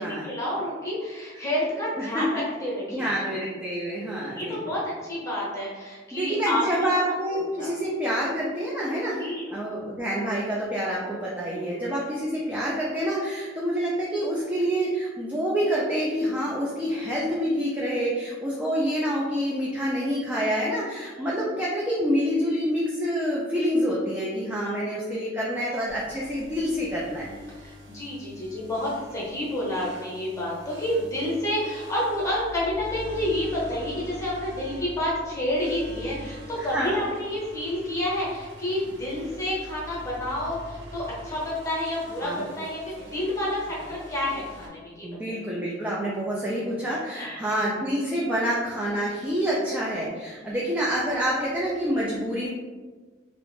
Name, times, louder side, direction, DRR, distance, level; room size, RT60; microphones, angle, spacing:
voice 1, 0.0-3.1 3.9-7.7 9.2-9.6 11.5-12.2 21.2-21.3 27.5-45.4 47.1-47.4, left 1 dB, 15° left, -6 dB, 0.8 m, -30 dB
voice 2, 2.9-4.6 6.1-27.4 36.6-37.0 42.2-42.5 45.0-52.5, equal, 10° right, -6 dB, 0.3 m, -27 dB
sound 1, 25.9-44.7, left 1 dB, 65° right, 0.5 m, -44 dB
2.5 x 2.0 x 3.1 m, 1.4 s
head